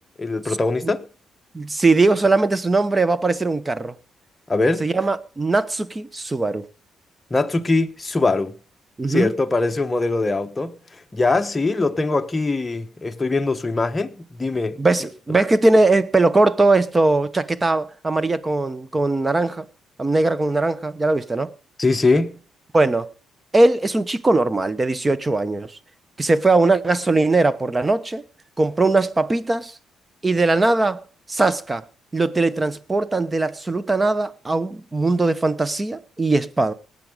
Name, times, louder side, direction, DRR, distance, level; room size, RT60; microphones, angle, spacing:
voice 1, 0.2-1.0 4.5-4.9 7.3-8.5 9.1-10.8 11.1-14.8 21.8-22.4, left 3 dB, 20° left, 1.1 m, -22 dB
voice 2, 1.5-3.9 4.8-6.7 9.0-9.3 14.8-19.7 20.0-21.5 22.7-23.1 23.5-25.7 26.2-28.2 28.6-29.8 30.2-31.0 31.3-31.9 32.1-36.7, right 2 dB, 20° right, 1.0 m, -20 dB
18.5 x 8.6 x 5.1 m
cardioid pair, 90°, 0 cm